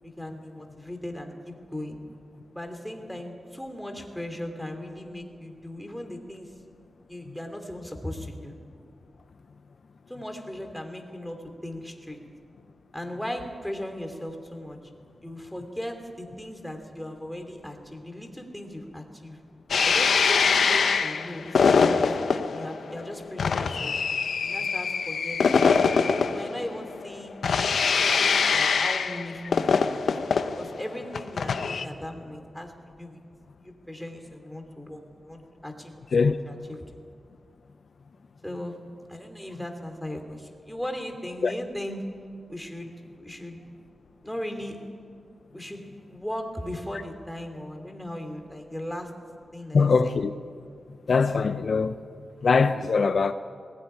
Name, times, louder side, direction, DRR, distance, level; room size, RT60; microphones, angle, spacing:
voice 1, 0.0-2.0 2.5-6.5 7.1-8.5 10.1-12.2 12.9-14.8 15.2-19.4 19.8-22.0 22.3-23.9 24.4-25.4 26.0-27.3 28.1-30.0 30.6-33.2 33.6-35.9 36.2-37.0 38.4-38.8 39.1-42.0 42.5-43.6 44.2-44.8 45.5-45.8 46.1-49.1 49.5-50.2, left 1 dB, 5° left, 2.9 m, -38 dB
sound 1, 19.7-31.8, left 5 dB, 80° left, 1.0 m, -23 dB
voice 2, 49.7-50.3 51.1-52.0 52.4-53.3, left 5 dB, 60° left, 0.7 m, -21 dB
19.5 x 17.0 x 9.8 m
wide cardioid pair, 105°, 0 cm